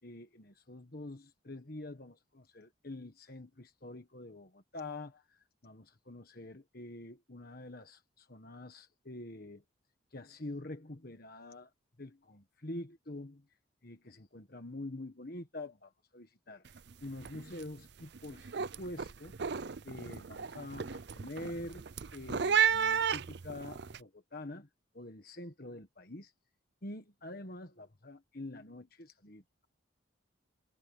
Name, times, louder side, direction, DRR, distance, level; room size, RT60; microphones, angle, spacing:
voice 1, 0.0-9.6 10.1-11.7 12.0-13.4 13.8-16.6 17.0-18.5 18.8-19.3 19.8-21.8 22.1-24.7 24.9-26.3 26.8-29.7, left 1 dB, 45° left, 1.5 m, -46 dB
sound 1, 16.7-16.9 17.2-17.6 18.0-24.0, right 7 dB, 55° right, 0.5 m, -33 dB
head